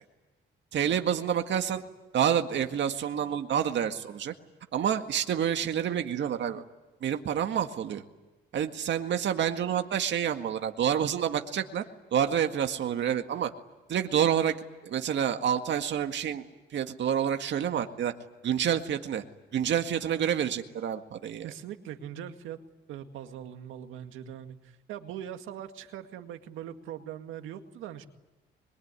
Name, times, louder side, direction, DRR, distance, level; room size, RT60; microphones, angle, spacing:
voice 1, 0.7-1.8 2.1-4.3 4.7-6.6 7.0-8.0 8.5-11.8 12.1-13.5 13.9-14.6 14.8-16.5 16.7-18.1 18.4-19.2 19.5-21.5, right 9 dB, 65° right, 6 dB, 1.9 m, -28 dB
voice 2, 21.4-22.6 22.9-28.1, right 10 dB, 90° right, 7 dB, 2.0 m, -41 dB
25.0 x 23.0 x 9.7 m, 1.1 s
cardioid pair, 90°, 20 cm